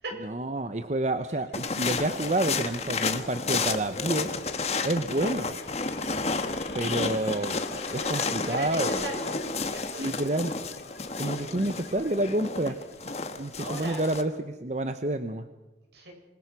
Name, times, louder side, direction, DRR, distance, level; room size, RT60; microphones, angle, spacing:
voice 1, 0.2-4.3 4.8-5.6 6.7-7.6 7.9-8.9 10.0-10.5 11.2-12.8 13.4-15.4, right 1 dB, 40° right, 9 dB, 0.9 m, -29 dB
sound 1, 1.3-13.9, left 3 dB, 65° left, 3.3 m, -50 dB
sound 2, 1.5-14.2, left 4 dB, 35° left, 1.5 m, -31 dB
voice 2, 7.9-10.1 11.2-11.4 12.6-12.8 13.2-14.0 15.9-16.1, right 1 dB, 70° right, 2 dB, 7.4 m, -39 dB
27.0 x 21.5 x 6.2 m, 1.1 s
head